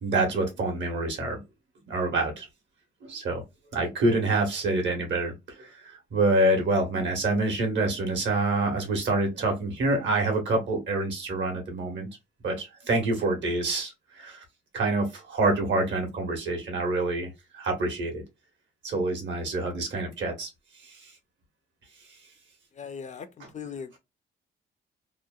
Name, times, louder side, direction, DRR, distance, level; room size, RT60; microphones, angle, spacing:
voice 1, 0.0-1.4 1.9-2.5 3.0-3.4 3.7-5.8 6.1-12.1 12.4-14.4 14.7-18.2 18.8-20.5 20.8-21.1, right 2 dB, 65° right, 1.2 m, -27 dB
voice 2, 22.8-24.0, left 6 dB, 35° left, 0.4 m, -39 dB
2.9 x 2.1 x 2.3 m
cardioid pair, 90°, 20 cm